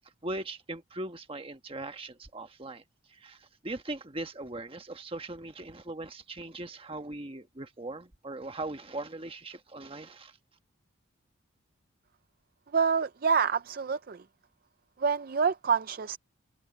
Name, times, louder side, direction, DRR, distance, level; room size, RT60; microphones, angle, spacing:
voice 1, 0.2-2.8 3.1-10.4, right 2 dB, 25° right, 1.3 m, -40 dB
voice 2, 12.7-14.3 15.0-16.2, right 6 dB, 45° right, 0.4 m, -27 dB
open air
head